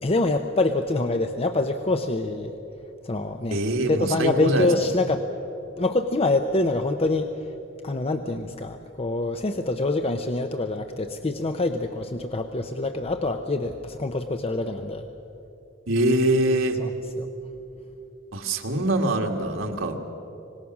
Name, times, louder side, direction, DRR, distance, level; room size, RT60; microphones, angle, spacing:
voice 1, 0.0-2.5 3.0-3.6 3.9-5.3 5.8-7.3 7.8-15.1 16.8-16.9 17.2-17.3, left 2 dB, 30° left, 7 dB, 0.7 m, -25 dB
voice 2, 3.5-4.7 15.9-16.8 18.3-20.0, right 1 dB, 85° right, 2 dB, 2.0 m, -23 dB
25.0 x 19.5 x 6.2 m, 3.0 s
head